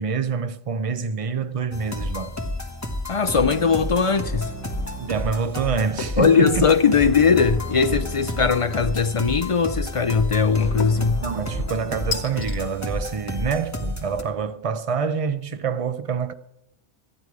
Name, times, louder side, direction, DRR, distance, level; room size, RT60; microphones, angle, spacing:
voice 1, 0.0-2.3 5.0-6.7 11.2-16.3, right 5 dB, 40° right, 0.6 m, -26 dB
sound 1, 1.7-14.2, left 1 dB, 15° left, 1.2 m, -30 dB
voice 2, 3.1-4.5 6.2-11.2, left 5 dB, 55° left, 0.4 m, -19 dB
sound 2, 6.0-6.3 6.7-7.2 8.9-9.5 10.8-11.2 12.1-12.6, left 5 dB, 85° left, 1.3 m, -34 dB
14.0 x 9.8 x 4.7 m
omnidirectional pair, 1.1 m